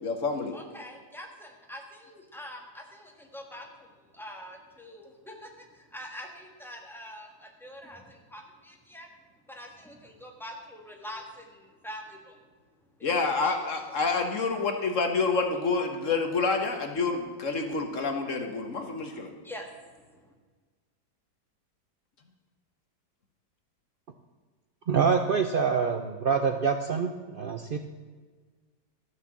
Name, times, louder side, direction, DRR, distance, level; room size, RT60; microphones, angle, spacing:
voice 1, 0.0-0.5 13.0-19.3, left 4 dB, 50° left, 4 dB, 1.4 m, -28 dB
voice 2, 0.5-3.7 4.1-5.5 5.9-9.1 9.5-12.3 13.2-13.8 19.4-19.7, equal, ahead, 1 dB, 1.5 m, -44 dB
voice 3, 24.9-27.8, right 6 dB, 85° right, 6 dB, 0.4 m, -26 dB
13.5 x 6.5 x 7.3 m, 1.4 s
omnidirectional pair, 1.8 m